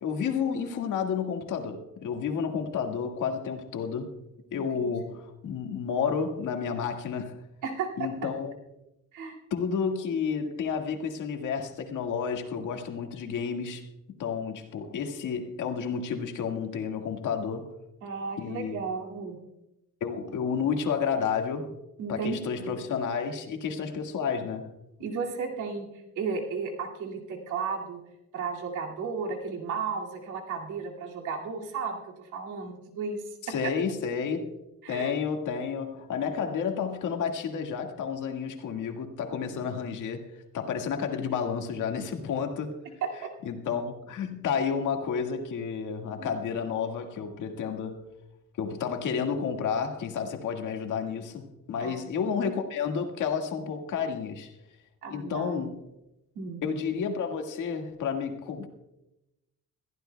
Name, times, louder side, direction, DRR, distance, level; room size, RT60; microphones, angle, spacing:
voice 1, 0.0-4.1 4.5-7.4 8.0-8.6 9.5-13.9 14.2-17.7 18.4-18.8 20.0-21.7 22.1-24.7 33.4-34.5 34.9-42.8 43.4-48.0 48.6-54.5 55.1-55.8 56.6-58.7, left 6 dB, 80° left, 1.9 m, -31 dB
voice 2, 7.6-8.3 9.1-9.4 18.0-19.4 22.0-22.7 25.0-25.9 26.2-28.0 28.3-33.4 34.8-35.1 39.6-39.7 43.0-43.1 46.2-46.3 51.8-52.1 55.0-55.6 56.3-56.6, right 5 dB, 85° right, 2.4 m, -34 dB
21.0 x 15.0 x 2.3 m
cardioid pair, 90°, 30 cm